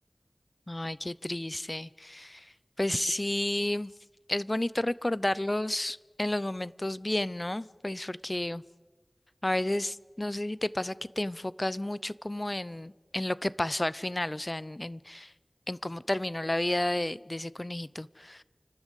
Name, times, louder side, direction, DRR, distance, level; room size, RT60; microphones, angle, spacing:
voice 1, 0.7-2.5 2.8-3.9 4.3-8.6 9.4-9.9 10.2-15.3 15.7-18.4, left 1 dB, 35° left, 0.6 m, -31 dB
29.5 x 12.5 x 8.2 m
wide cardioid pair, 40°, 0 cm